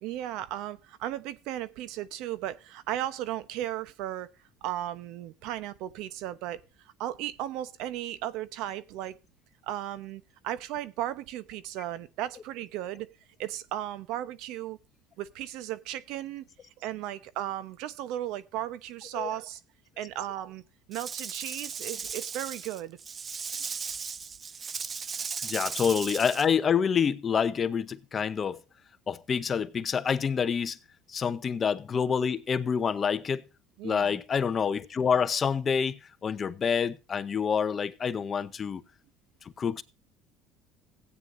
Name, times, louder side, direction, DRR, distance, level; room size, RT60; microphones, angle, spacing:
voice 1, 0.0-4.3 4.6-9.2 9.6-13.1 13.4-14.8 15.2-16.4 16.8-19.6 20.0-20.6 20.9-23.0 25.4-25.5 33.8-34.2, right 13 dB, 70° right, 0.9 m, -35 dB
Rattle / Rattle (instrument), 20.9-26.5, right 6 dB, 30° right, 0.5 m, -36 dB
voice 2, 25.4-28.6 29.1-30.8 31.1-33.4 33.8-38.8 39.6-39.8, left 6 dB, 30° left, 0.8 m, -27 dB
16.5 x 9.2 x 2.6 m
cardioid pair, 120°, 0 cm